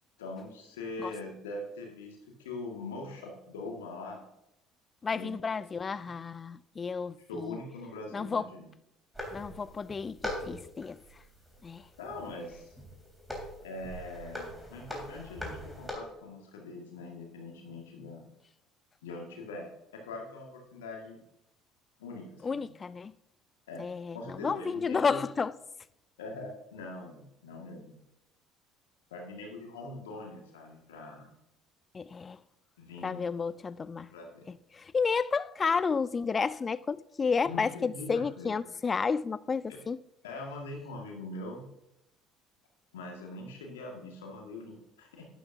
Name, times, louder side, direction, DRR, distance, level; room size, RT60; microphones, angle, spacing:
voice 1, 0.2-4.2 5.1-5.3 5.7-6.1 7.3-8.7 12.0-12.7 13.6-18.2 19.0-21.2 22.0-22.7 23.7-23.9 24.1-25.2 26.2-28.0 29.1-31.3 32.8-33.2 34.1-34.5 37.4-38.6 40.2-41.6 42.9-45.3, left 2 dB, 70° left, 1.9 m, -42 dB
voice 2, 5.0-7.6 8.1-8.5 9.3-11.0 11.6-11.9 22.4-23.1 23.8-25.5 31.9-32.4 33.0-34.1 34.5-40.0, left 5 dB, 30° left, 0.4 m, -31 dB
sound 1, 9.1-15.9, left 1 dB, ahead, 3.3 m, -42 dB
11.5 x 10.0 x 2.8 m
figure-of-eight pair, 55°, 0 cm